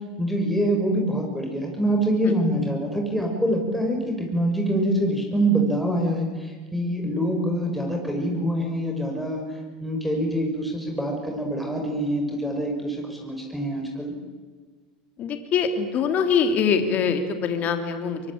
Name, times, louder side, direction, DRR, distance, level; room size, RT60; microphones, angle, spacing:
voice 1, 0.2-9.4 9.8-14.1, right 1 dB, ahead, 0 dB, 5.9 m, -25 dB
voice 2, 15.2-18.2, left 6 dB, 45° left, 7 dB, 3.3 m, -23 dB
24.0 x 23.0 x 8.8 m, 1.4 s
hypercardioid pair, 95°, 4 cm